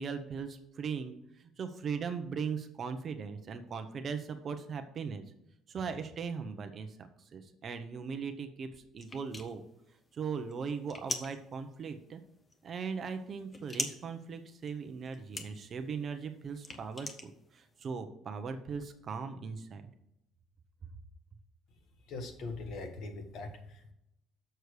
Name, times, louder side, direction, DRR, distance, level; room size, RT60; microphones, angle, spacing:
voice 1, 0.0-5.2 5.7-9.6 10.1-12.2 12.6-19.8, right 5 dB, 30° right, 8 dB, 0.7 m, -39 dB
sound 1, 9.0-17.9, left 2 dB, 15° left, 0.7 m, -43 dB
voice 2, 22.1-23.9, left 3 dB, 50° left, 5 dB, 1.4 m, -41 dB
6.7 x 6.3 x 4.8 m, 0.80 s
cardioid pair, 175°, 0 cm